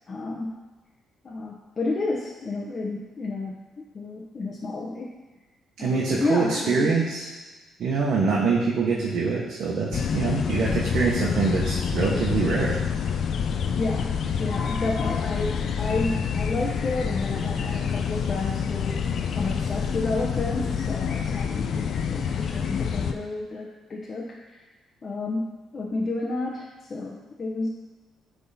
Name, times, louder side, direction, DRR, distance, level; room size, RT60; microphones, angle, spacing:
voice 1, 0.1-0.6 1.2-5.1 5.8-7.0 13.8-19.0 19.3-24.5 25.0-27.7, left 2 dB, 40° left, -3 dB, 0.9 m, -31 dB
voice 2, 5.8-7.3 7.8-12.8, right 4 dB, 70° right, -5 dB, 1.2 m, -24 dB
sound 1, 9.9-23.1, left 6 dB, 60° left, 0.5 m, -27 dB
9.5 x 3.7 x 4.2 m, 1.2 s
cardioid pair, 90°, 0 cm